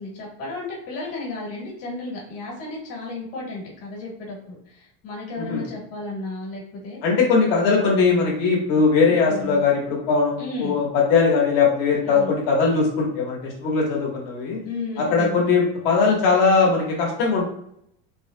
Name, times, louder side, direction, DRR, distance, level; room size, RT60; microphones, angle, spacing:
voice 1, 0.0-7.0 9.1-9.6 10.4-10.8 12.0-12.3 14.6-15.4, left 3 dB, 45° left, -3 dB, 1.5 m, -33 dB
voice 2, 7.0-14.6 15.0-17.4, left 4 dB, 75° left, -2 dB, 1.4 m, -20 dB
3.6 x 2.8 x 2.2 m, 0.73 s
cardioid pair, 160°, 33 cm